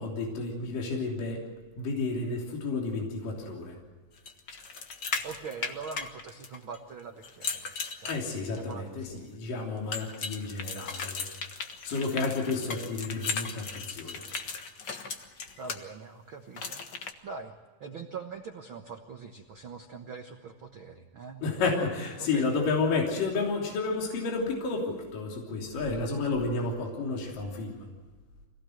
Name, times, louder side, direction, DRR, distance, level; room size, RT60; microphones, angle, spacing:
voice 1, 0.0-1.4 1.8-3.8 8.1-11.3 11.8-14.2 21.4-27.9, left 3 dB, 65° left, -1 dB, 4.7 m, -31 dB
sound 1, 4.3-6.8 7.2-8.7 9.9-15.8 16.6-17.1, left 5 dB, 85° left, 0.9 m, -37 dB
voice 2, 5.2-7.7 8.0-8.2 8.5-9.3 15.6-16.8 17.2-17.5 17.8-21.4 22.2-22.6, right 5 dB, 70° right, 3 dB, 1.2 m, -43 dB
25.5 x 18.0 x 7.9 m, 1.3 s
omnidirectional pair, 4.3 m